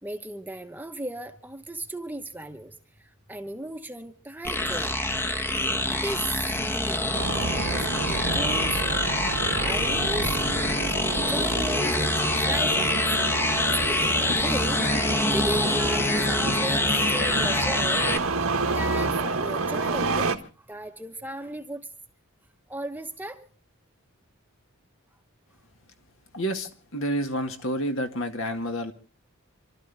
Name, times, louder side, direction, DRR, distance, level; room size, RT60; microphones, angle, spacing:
voice 1, 0.0-4.9 5.9-9.0 9.5-13.0 13.5-14.9 15.3-20.3 20.6-21.9 22.7-23.5, right 1 dB, 10° right, 6 dB, 1.0 m, -36 dB
sound 1, 4.4-18.2, left 1 dB, 10° left, 0.9 m, -25 dB
sound 2, 6.7-14.6 15.2-15.3, right 3 dB, 65° right, 0.7 m, -39 dB
Engine starting, 7.1-20.4, right 3 dB, 85° right, 1.6 m, -30 dB
voice 2, 26.3-28.9, equal, 65° left, 6 dB, 1.9 m, -29 dB
28.0 x 13.0 x 3.5 m, 0.36 s
head